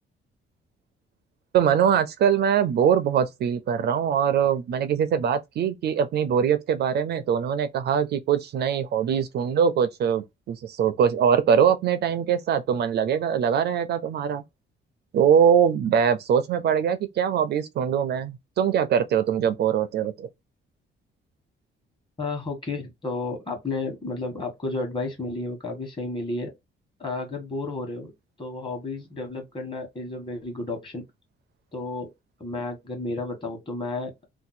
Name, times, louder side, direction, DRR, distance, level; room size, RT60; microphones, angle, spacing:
voice 1, 1.5-14.4 15.1-20.3, right 8 dB, 60° right, 0.4 m, -22 dB
voice 2, 22.2-26.5 27.0-28.1 28.4-31.0 31.7-32.1 32.4-34.3, left 2 dB, 25° left, 1.2 m, -32 dB
2.7 x 2.2 x 4.0 m
cardioid pair, 150°, 20 cm